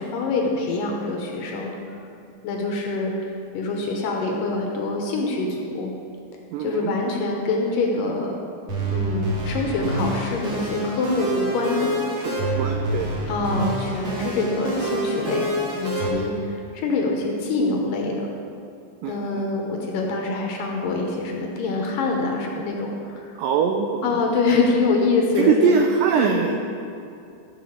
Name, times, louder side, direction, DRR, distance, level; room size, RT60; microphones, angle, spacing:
voice 1, 0.0-1.8 2.4-5.9 6.6-8.3 8.9-11.9 13.3-15.5 15.7-18.3 19.1-23.3 24.0-25.7 26.2-26.5, left 3 dB, 70° left, 0 dB, 2.3 m, -25 dB
voice 2, 6.5-7.0 12.2-13.2 16.1-16.3 19.0-19.5 23.4-24.2 25.4-26.8, right 6 dB, 90° right, 4 dB, 1.9 m, -23 dB
sound 1, 8.7-16.1, right 1 dB, 45° right, 2.0 m, -26 dB
13.0 x 5.0 x 6.4 m, 2.5 s
omnidirectional pair, 4.5 m